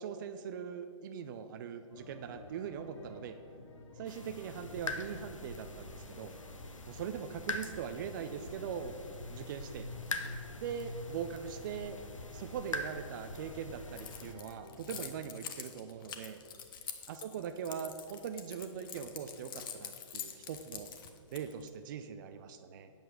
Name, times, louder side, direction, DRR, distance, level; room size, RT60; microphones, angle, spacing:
voice 1, 0.0-3.4 4.0-6.3 6.9-8.9 9.3-9.9 10.6-12.0 12.3-16.4 17.1-20.9 21.3-22.9, right 7 dB, 40° right, 9 dB, 0.5 m, -41 dB
sound 1, 1.9-15.1, left 2 dB, 65° left, 1.3 m, -51 dB
sound 2, 4.1-14.3, left 2 dB, 80° left, 1.0 m, -44 dB
Keys jangling, 14.0-21.7, left 8 dB, 45° left, 1.0 m, -45 dB
8.9 x 7.7 x 6.3 m, 2.2 s
figure-of-eight pair, 120°, 16 cm